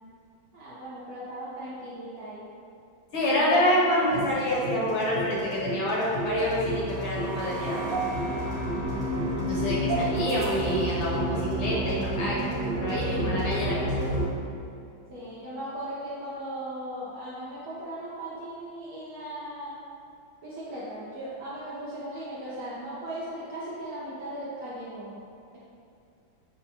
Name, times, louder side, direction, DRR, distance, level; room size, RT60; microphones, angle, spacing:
voice 1, 0.5-2.5 8.2-8.6 15.1-19.8 20.4-25.2, right 1 dB, 65° right, -8 dB, 0.9 m, -38 dB
voice 2, 3.1-7.8 9.4-13.8, left 1 dB, 75° left, -5 dB, 1.7 m, -27 dB
sound 1, 4.1-14.3, right 1 dB, 85° right, 1.7 m, -30 dB
6.4 x 2.1 x 2.8 m, 2.5 s
omnidirectional pair, 2.2 m